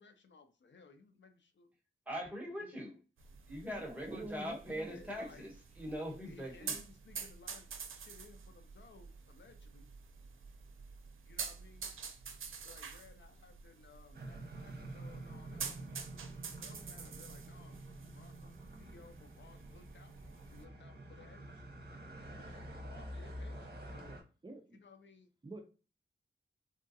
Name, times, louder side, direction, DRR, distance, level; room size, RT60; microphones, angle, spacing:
voice 1, 0.0-1.7 2.6-2.7 4.9-5.4 6.3-9.9 11.3-11.9 12.6-15.8 16.3-17.8 18.1-18.5 18.8-21.6 22.3-24.1 24.7-25.3, left 4 dB, 65° left, 6 dB, 0.5 m, -59 dB
voice 2, 2.1-3.0 3.5-6.8, equal, 5° right, -2 dB, 1.2 m, -42 dB
sound 1, 3.2-20.6, right 6 dB, 90° right, 0.5 m, -48 dB
voice 3, 3.7-5.4 24.4-24.8 25.4-25.6, right 2 dB, 25° right, 2 dB, 0.5 m, -47 dB
sound 2, 14.1-24.2, right 1 dB, 50° right, 0.9 m, -48 dB
3.7 x 2.3 x 2.6 m, 0.34 s
wide cardioid pair, 90°, 20 cm